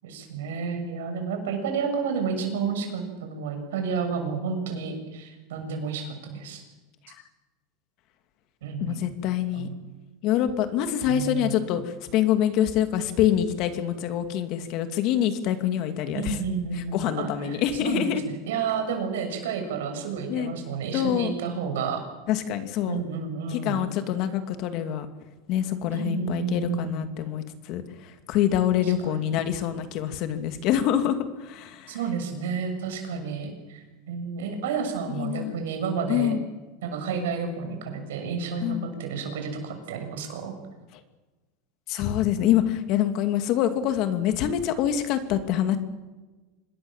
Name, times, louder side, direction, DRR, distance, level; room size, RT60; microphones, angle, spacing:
voice 1, 0.0-6.6 8.6-9.0 9.5-9.8 11.0-11.6 16.1-18.2 18.5-22.0 22.9-23.8 25.9-27.0 28.8-29.5 31.9-36.3 36.8-40.5, right 5 dB, 90° right, 5 dB, 6.8 m, -31 dB
voice 2, 8.8-9.7 10.2-16.4 16.7-18.2 20.3-20.5 20.9-21.3 22.3-23.0 23.5-25.1 25.5-31.9 35.1-35.5 36.1-36.4 38.6-38.8 41.9-45.8, left 10 dB, 50° left, 8 dB, 2.6 m, -25 dB
26.0 x 20.5 x 7.4 m, 1.2 s
supercardioid pair, 145°, 0 cm